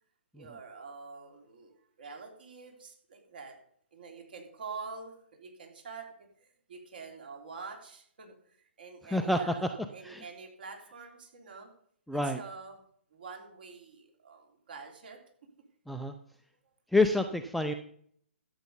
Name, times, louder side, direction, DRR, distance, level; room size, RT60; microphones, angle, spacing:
voice 1, 0.3-3.6 3.9-6.1 6.4-11.7 12.2-12.8 13.1-15.2, right 4 dB, 50° right, 2 dB, 3.2 m, -46 dB
voice 2, 9.1-9.7 10.0-10.2 12.1-12.4 15.9-16.1 16.9-17.7, left 2 dB, ahead, 7 dB, 0.5 m, -27 dB
13.0 x 8.1 x 5.4 m, 0.63 s
figure-of-eight pair, 125°, 7 cm